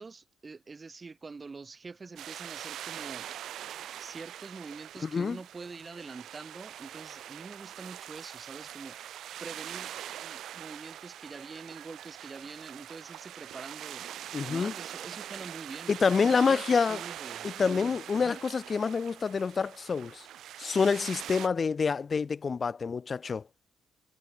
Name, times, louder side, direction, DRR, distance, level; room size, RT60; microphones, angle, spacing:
voice 1, 0.0-3.3 4.0-9.0 9.4-9.9 10.2-14.1 14.5-16.0 16.2-18.4, right 4 dB, 30° right, 4.0 m, -45 dB
sound 1, 2.2-21.5, right 11 dB, 75° right, 0.6 m, -43 dB
voice 2, 5.0-5.4 14.3-14.7 15.9-17.0 17.4-20.3 20.6-23.4, left 5 dB, 40° left, 0.5 m, -27 dB
cardioid pair, 90°, 0 cm